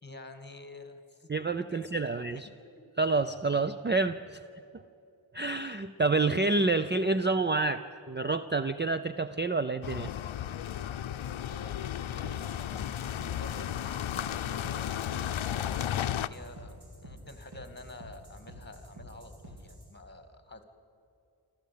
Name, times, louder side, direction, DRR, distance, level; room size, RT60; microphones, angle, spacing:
voice 1, 0.0-2.8 11.5-12.5 13.4-20.6, left 2 dB, 20° left, 8 dB, 2.1 m, -50 dB
voice 2, 1.3-2.5 3.0-4.4 5.3-10.1, right 3 dB, 25° right, 11 dB, 0.5 m, -28 dB
sound 1, 9.8-16.3, left 10 dB, 80° left, 0.7 m, -34 dB
sound 2, 12.2-19.9, equal, 55° right, 4.4 m, -49 dB
28.0 x 13.0 x 8.5 m, 2.7 s
wide cardioid pair, 110°, 47 cm